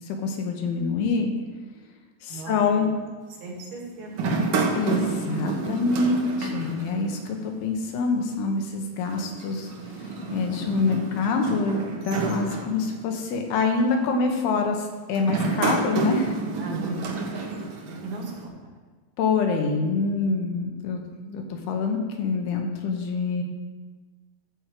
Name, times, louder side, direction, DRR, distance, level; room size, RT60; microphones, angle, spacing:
voice 1, 0.1-1.3 2.2-2.9 4.7-16.4 19.2-23.4, left 4 dB, 80° left, 3 dB, 3.1 m, -26 dB
voice 2, 2.3-2.8 3.4-4.6 16.6-17.3 17.8-18.5, right 3 dB, 70° right, -3 dB, 4.0 m, -36 dB
sound 1, 4.1-7.5 7.8-7.9 9.1-13.3 13.9-14.2 15.1-18.4, right 3 dB, 90° right, 1.2 m, -29 dB
12.5 x 4.6 x 7.8 m, 1.3 s
omnidirectional pair, 4.5 m